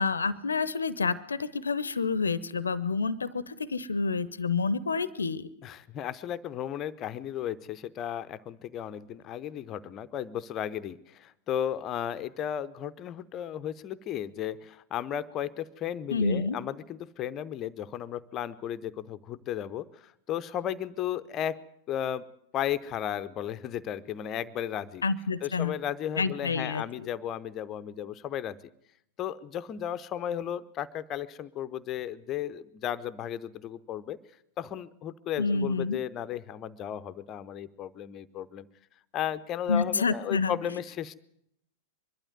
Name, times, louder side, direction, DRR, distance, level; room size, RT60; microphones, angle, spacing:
voice 1, 0.0-5.5 16.1-16.6 25.0-25.7 26.2-27.1 35.4-36.0 39.7-40.5, left 4 dB, 75° left, 19 dB, 0.7 m, -28 dB
voice 2, 5.6-21.6 21.9-22.2 22.5-25.0 25.4-28.6 29.2-34.2 34.6-38.7 39.1-41.2, left 10 dB, 30° left, 14 dB, 0.7 m, -34 dB
23.0 x 12.5 x 9.4 m, 0.76 s
figure-of-eight pair, 90°, 0 cm